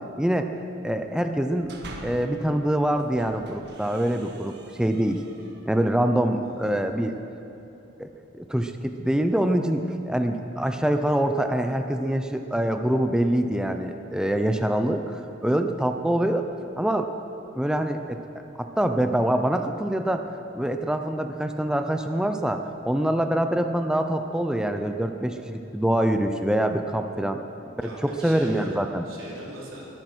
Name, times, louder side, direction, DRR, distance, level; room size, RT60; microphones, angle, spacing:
voice 1, 0.8-1.7 2.0-5.2 5.7-7.1 8.0-8.1 8.3-16.5 16.8-17.1 17.5-18.2 18.6-20.2 20.5-22.6 22.8-27.4 28.0-29.0, right 1 dB, 5° right, 6 dB, 0.5 m, -25 dB
sound 1, 1.3-2.4 2.9-5.7, right 1 dB, 55° right, 1.5 m, -45 dB
voice 2, 6.3-6.9 27.8-29.9, right 1 dB, 85° right, -5 dB, 3.9 m, -41 dB
21.5 x 9.0 x 6.2 m, 2.9 s
head